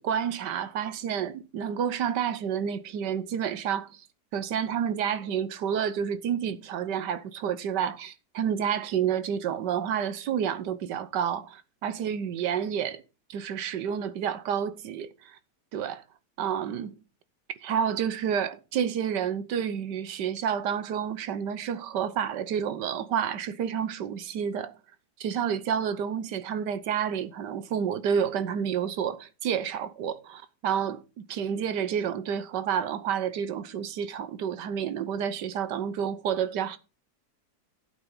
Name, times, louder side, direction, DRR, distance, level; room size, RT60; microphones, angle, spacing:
voice 1, 0.0-4.1 4.3-13.0 13.3-15.4 15.7-16.0 16.4-17.0 17.6-24.8 25.2-36.8, right 8 dB, 80° right, 1.5 m, -29 dB
11.5 x 8.6 x 3.8 m
omnidirectional pair, 1.8 m